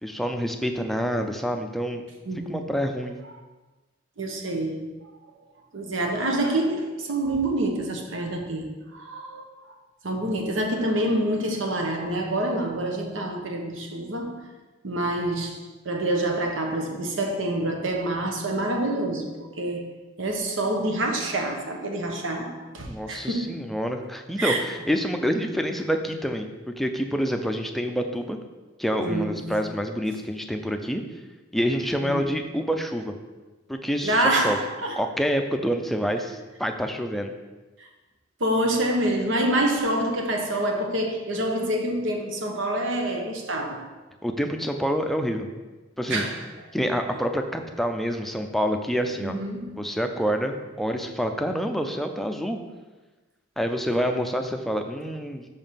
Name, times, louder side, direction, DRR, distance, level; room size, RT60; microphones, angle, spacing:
voice 1, 0.0-2.0 2.5-3.1 22.8-26.5 26.8-28.4 28.8-31.0 31.5-33.2 33.7-34.6 35.0-37.3 44.2-45.5 46.0-46.3 46.7-49.4 49.8-52.6 53.6-55.5, equal, ahead, 5 dB, 0.5 m, -27 dB
voice 2, 2.3-2.6 4.2-4.9 5.7-9.7 10.0-14.4 14.8-19.8 20.2-23.6 24.4-24.6 29.0-29.6 32.0-32.3 34.0-35.0 37.8-37.9 38.4-43.9 46.1-46.5 49.2-49.9, right 1 dB, 80° right, 3 dB, 1.0 m, -27 dB
5.4 x 5.0 x 5.7 m, 1.2 s
head